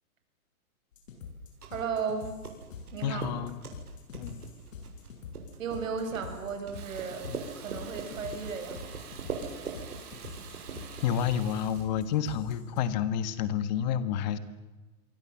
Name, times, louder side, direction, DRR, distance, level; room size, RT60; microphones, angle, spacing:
sound 1, 0.9-12.8, left 5 dB, 60° left, 7.8 m, -45 dB
sound 2, 1.3-12.3, right 5 dB, 85° right, 7.3 m, -43 dB
voice 1, 1.7-2.4 2.9-3.3 5.6-7.3 7.6-8.8, right 6 dB, 60° right, 6 dB, 6.8 m, -34 dB
voice 2, 3.0-3.6 4.1-4.4 7.3-7.4 11.0-14.4, left 8 dB, 30° left, 13 dB, 1.6 m, -29 dB
Water tap faucet / Bathtub (filling or washing), 6.7-11.8, right 7 dB, 45° right, 6.2 m, -48 dB
28.0 x 23.5 x 7.4 m, 1.2 s
hypercardioid pair, 160°, 44 cm